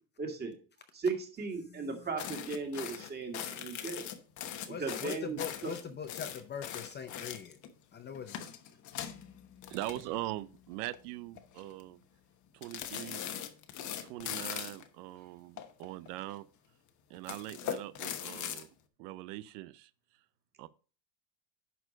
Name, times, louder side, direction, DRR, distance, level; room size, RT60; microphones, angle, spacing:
voice 1, 0.2-0.5 0.9-4.0 4.8-5.8, right 4 dB, 20° right, 2.0 m, -36 dB
sound 1, 2.2-7.7 8.1-10.5 10.7-11.0 11.4-11.8 12.6-14.9 15.6-16.4 17.1-18.6, left 10 dB, 40° left, 1.1 m, -41 dB
voice 2, 4.7-7.6 7.9-8.3, left 7 dB, 20° left, 0.6 m, -42 dB
voice 3, 9.7-12.0 12.5-13.2 14.0-16.5 17.1-18.7 19.0-19.9 20.6-20.7, right 16 dB, 85° right, 0.7 m, -41 dB
11.0 x 4.5 x 5.1 m
cardioid pair, 155°, 47 cm